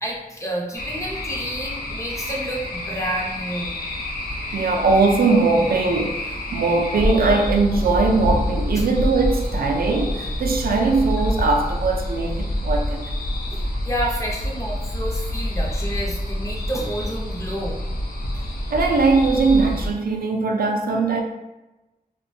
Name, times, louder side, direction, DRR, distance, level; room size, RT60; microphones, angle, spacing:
voice 1, 0.0-3.7 4.2-4.4 8.7-8.8 13.5-17.8 18.3-18.4, right 1 dB, 20° left, -2 dB, 0.6 m, -30 dB
sound 1, 0.7-19.9, left 1 dB, 75° left, 0.6 m, -27 dB
voice 2, 4.5-13.0 18.7-21.2, right 3 dB, 75° right, 1 dB, 0.4 m, -20 dB
2.9 x 2.1 x 2.6 m, 1.0 s
wide cardioid pair, 100°, 15 cm